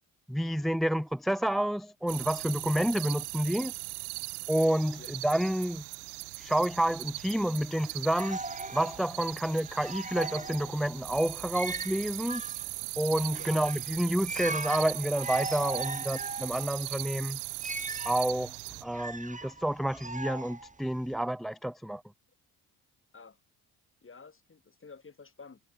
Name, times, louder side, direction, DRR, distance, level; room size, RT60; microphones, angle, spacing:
voice 1, 0.3-3.7 4.5-5.8 6.4-8.4 8.7-12.4 13.0-17.4 18.1-18.6 18.8-22.0, right 1 dB, ahead, 0.4 m, -29 dB
sound 1, 2.1-18.8, right 35 dB, 85° right, 1.0 m, -39 dB
sound 2, 8.2-21.1, right 3 dB, 20° right, 5.0 m, -40 dB
voice 2, 24.0-25.6, left 4 dB, 30° left, 4.6 m, -51 dB
supercardioid pair, 65°, 42 cm